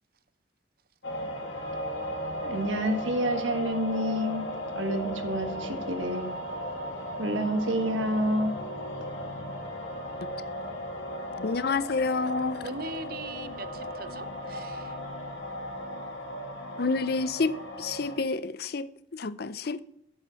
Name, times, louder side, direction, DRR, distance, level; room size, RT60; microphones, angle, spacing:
sound 1, 1.0-18.2, equal, 70° left, 2.4 m, -36 dB
voice 1, 2.4-6.3 7.2-8.6, equal, 90° right, 1.6 m, -29 dB
voice 2, 11.4-12.6 16.8-19.8, left 4 dB, 55° left, 0.5 m, -29 dB
voice 3, 12.6-14.9, right 3 dB, 50° right, 0.7 m, -40 dB
8.6 x 7.6 x 5.8 m
head